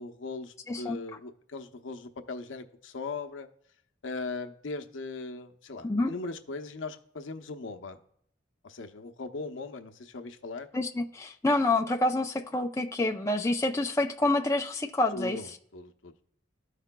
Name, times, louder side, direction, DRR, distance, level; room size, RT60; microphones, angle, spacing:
voice 1, 0.0-3.5 4.0-8.0 8.6-10.7 15.1-16.2, left 3 dB, 85° left, 6 dB, 0.7 m, -39 dB
voice 2, 0.7-1.0 5.8-6.1 10.7-15.4, left 2 dB, 15° left, 2 dB, 0.4 m, -27 dB
14.0 x 4.9 x 2.2 m, 0.68 s
head